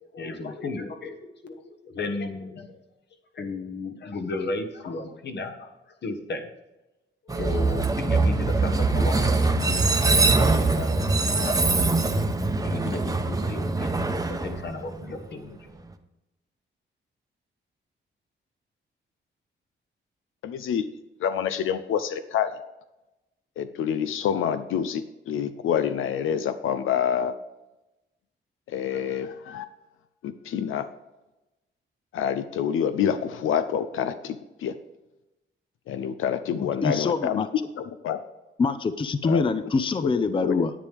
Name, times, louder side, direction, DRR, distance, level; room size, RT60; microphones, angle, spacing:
voice 1, 0.0-2.8 3.3-5.8 6.0-6.5 7.2-11.6 12.6-14.0 14.3-15.7, left 3 dB, 60° left, 5 dB, 1.4 m, -34 dB
Train, 7.3-15.3, right 3 dB, 15° right, 0.8 m, -23 dB
voice 2, 20.4-20.9 21.2-22.5 23.6-27.3 28.7-29.6 30.2-30.9 32.1-34.8 35.9-37.5 37.8-38.2 39.2-39.4 40.0-40.1 40.4-40.6, left 8 dB, 90° left, 10 dB, 0.6 m, -27 dB
voice 3, 36.5-37.5 38.6-40.7, left 4 dB, 25° left, 11 dB, 0.5 m, -25 dB
10.0 x 9.2 x 3.4 m, 1.0 s
cardioid pair, 115°, 20 cm